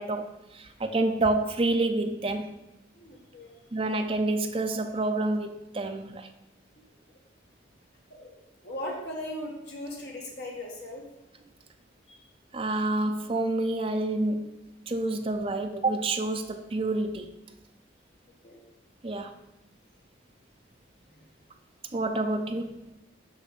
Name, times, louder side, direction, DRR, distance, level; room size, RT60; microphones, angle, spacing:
voice 1, 0.0-2.6 3.7-6.3 12.5-14.5 14.9-17.3 19.0-19.3 21.9-22.9, right 2 dB, 30° right, 6 dB, 0.5 m, -28 dB
voice 2, 2.9-3.6 7.1-7.2 8.1-8.4 8.6-11.0 12.1-12.2 18.4-18.6 21.1-21.3, left 1 dB, 55° left, -2 dB, 1.7 m, -38 dB
6.4 x 5.6 x 4.1 m, 0.96 s
head